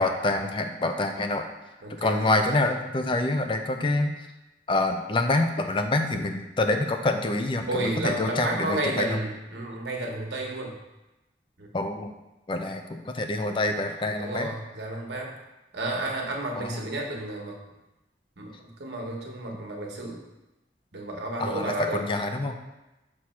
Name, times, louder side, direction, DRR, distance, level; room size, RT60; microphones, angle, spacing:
voice 1, 0.0-1.5 1.9-4.1 4.7-9.2 11.7-12.1 12.5-14.5 16.6-16.8 21.4-22.6, left 2 dB, 30° left, 6 dB, 0.4 m, -26 dB
voice 2, 1.8-2.6 7.7-10.8 11.6-11.7 14.2-15.3 15.7-17.6 18.4-20.2 20.9-22.1, right 1 dB, 80° right, -1 dB, 1.2 m, -32 dB
6.1 x 3.1 x 5.8 m, 0.99 s
head